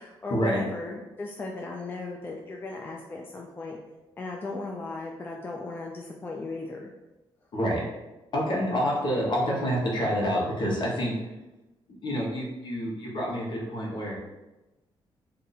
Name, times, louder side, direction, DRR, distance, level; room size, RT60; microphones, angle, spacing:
voice 1, 0.0-3.8 4.2-6.9, left 3 dB, 20° left, 0 dB, 0.3 m, -36 dB
voice 2, 8.3-11.1 11.9-14.2, equal, 50° left, -3 dB, 1.0 m, -27 dB
2.6 x 2.6 x 4.0 m, 1.0 s
cardioid pair, 120°, 10 cm